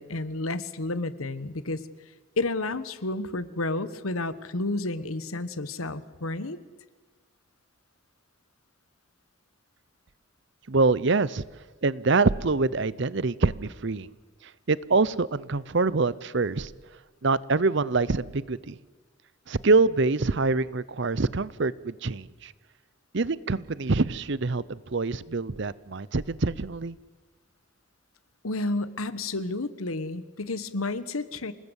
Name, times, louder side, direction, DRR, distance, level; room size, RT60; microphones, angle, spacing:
voice 1, 0.0-1.8 2.4-6.6 28.4-31.5, left 2 dB, 85° left, 14 dB, 1.3 m, -31 dB
voice 2, 10.7-11.4 11.8-14.1 14.7-16.7 17.2-18.8 19.5-22.5 23.1-27.0, right 3 dB, 55° right, 20 dB, 0.7 m, -25 dB
28.5 x 19.5 x 8.2 m, 1.3 s
head